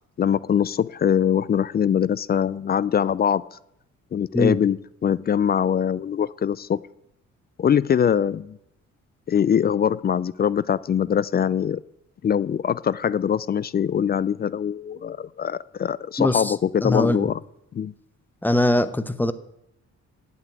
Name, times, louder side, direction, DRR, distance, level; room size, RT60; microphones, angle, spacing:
voice 1, 0.2-3.6 4.1-6.8 7.6-8.6 9.3-11.8 12.2-17.4 17.7-17.9, left 8 dB, 35° left, 20 dB, 0.4 m, -23 dB
voice 2, 16.2-16.5 16.8-17.3 18.4-19.3, left 1 dB, 5° left, 13 dB, 0.8 m, -21 dB
8.3 x 7.6 x 8.9 m, 0.79 s
cardioid pair, 90°, 30 cm